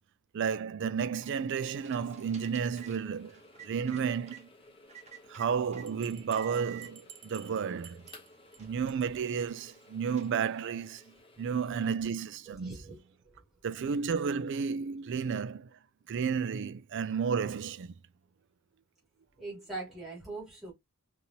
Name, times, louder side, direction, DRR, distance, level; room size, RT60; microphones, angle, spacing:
voice 1, 0.3-4.5 5.3-8.0 8.6-11.0 11.4-12.8 13.6-15.7 16.1-17.9, right 6 dB, 55° right, 0.4 m, -32 dB
sound 1, 1.0-4.4 4.9-5.9 6.3-6.9 7.6-7.7 8.0-10.8, right 10 dB, 30° right, 1.2 m, -52 dB
sound 2, 1.7-12.0, left 2 dB, 25° left, 0.9 m, -58 dB
Bell, 5.9-8.6 8.9-9.1 9.4-9.5 9.8-9.9 10.2-10.3, right 8 dB, 85° right, 0.9 m, -53 dB
voice 2, 12.5-13.4 15.2-15.3 19.4-20.7, right 3 dB, ahead, 2.6 m, -42 dB
5.2 x 2.9 x 2.7 m
head